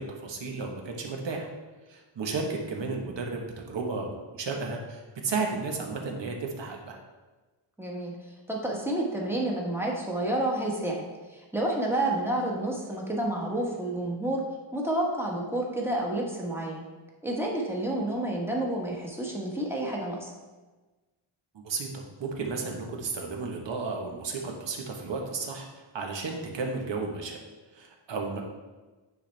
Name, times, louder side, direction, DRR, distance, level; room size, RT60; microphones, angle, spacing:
voice 1, 0.0-1.5 1.9-7.0 21.5-27.4 27.7-28.4, right 4 dB, 60° right, 1 dB, 1.3 m, -33 dB
voice 2, 7.8-8.2 8.5-11.0 11.3-14.4 14.7-16.8 17.2-20.3, right 1 dB, 5° right, -2 dB, 1.2 m, -29 dB
9.4 x 4.3 x 3.4 m, 1.2 s
wide cardioid pair, 120°, 49 cm